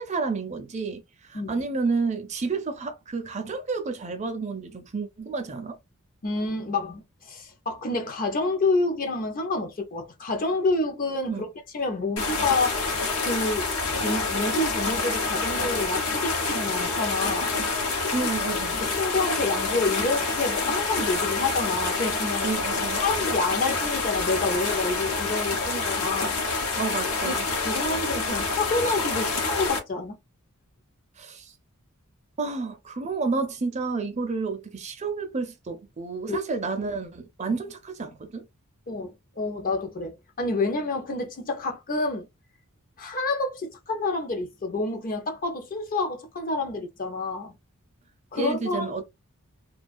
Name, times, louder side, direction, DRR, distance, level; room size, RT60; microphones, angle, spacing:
voice 1, 0.0-5.8 11.3-11.5 18.1-18.8 22.4-23.0 26.8-27.5 31.2-31.5 32.4-38.4 48.3-49.0, right 4 dB, 30° right, 0.5 m, -30 dB
voice 2, 6.2-12.8 13.2-13.7 14.0-17.6 18.8-22.5 23.0-26.4 27.2-27.4 27.6-30.2 36.2-36.4 37.5-37.6 38.9-42.3 43.0-47.5 48.3-49.0, left 3 dB, 40° left, 0.6 m, -28 dB
sound 1, 12.2-29.8, left 3 dB, 70° left, 0.8 m, -27 dB
2.3 x 2.3 x 2.5 m
head